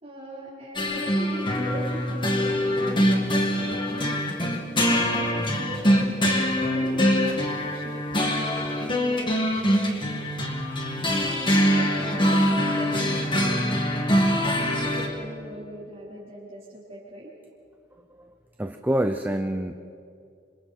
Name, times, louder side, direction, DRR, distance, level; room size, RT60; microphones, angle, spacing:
voice 1, 0.0-4.2 4.9-10.1 10.9-17.3, right 1 dB, 35° right, -9 dB, 4.6 m, -39 dB
sound 1, 0.8-15.1, equal, 25° left, 2.3 m, -24 dB
voice 2, 18.6-19.7, right 1 dB, 10° right, 6 dB, 0.6 m, -26 dB
27.0 x 26.0 x 4.5 m, 2.4 s
head